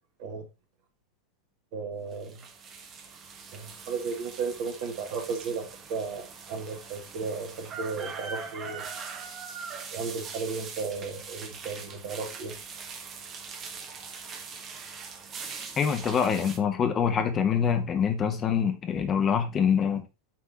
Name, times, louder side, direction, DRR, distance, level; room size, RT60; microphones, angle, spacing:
voice 1, 1.7-2.4 3.5-8.9 9.9-12.6, right 4 dB, 45° right, 1.7 m, -34 dB
sound 1, 2.1-16.6, right 5 dB, 30° right, 1.2 m, -42 dB
voice 2, 15.8-20.0, left 7 dB, 25° left, 1.2 m, -25 dB
8.7 x 3.7 x 4.1 m
figure-of-eight pair, 90°, 0 cm